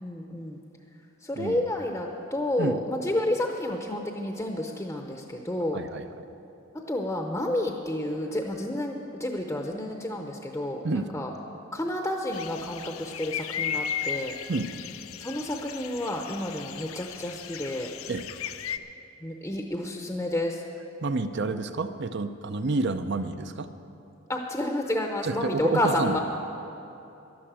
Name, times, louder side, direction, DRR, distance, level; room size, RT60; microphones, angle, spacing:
voice 1, 0.0-0.6 1.2-5.8 6.9-11.3 11.7-14.3 15.2-17.9 19.2-20.6 24.3-26.2, left 1 dB, 10° left, 2 dB, 0.7 m, -30 dB
voice 2, 5.7-6.3 10.8-11.1 14.5-14.7 18.1-18.2 21.0-23.7 25.2-26.2, right 3 dB, 50° right, 10 dB, 0.6 m, -29 dB
sound 1, 12.3-18.8, left 8 dB, 75° left, 0.5 m, -36 dB
12.0 x 11.5 x 7.5 m, 2.9 s
head